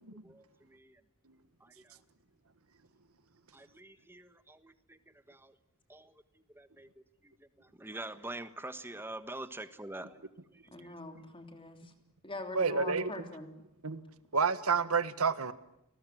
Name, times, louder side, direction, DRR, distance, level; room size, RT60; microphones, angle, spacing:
voice 1, 0.2-1.0 1.6-2.0 3.5-5.0 5.3-5.5 5.9-6.1 6.5-6.9 7.2-7.3 7.6-11.0, right 2 dB, 10° right, 11 dB, 1.4 m, -46 dB
voice 2, 10.7-11.9 12.2-13.5, left 2 dB, 25° left, 6 dB, 3.3 m, -43 dB
voice 3, 12.5-13.1 13.8-14.0 14.3-15.5, right 5 dB, 80° right, 13 dB, 1.6 m, -29 dB
30.0 x 19.5 x 9.3 m, 0.82 s
head